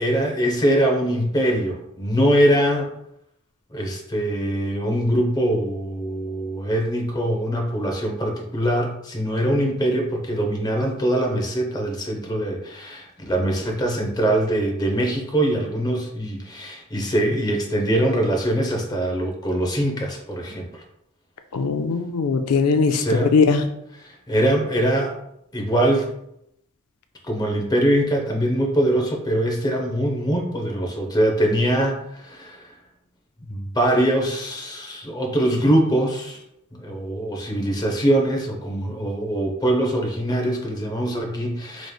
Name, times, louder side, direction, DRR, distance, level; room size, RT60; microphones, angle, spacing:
voice 1, 0.0-2.9 3.7-20.8 22.9-23.3 24.0-25.2 25.5-26.1 27.2-32.7 33.5-36.4 36.7-41.9, right 1 dB, 20° left, 1 dB, 0.7 m, -23 dB
voice 2, 21.5-23.6, left 5 dB, 80° left, 7 dB, 0.4 m, -20 dB
5.0 x 3.1 x 2.3 m, 0.78 s
head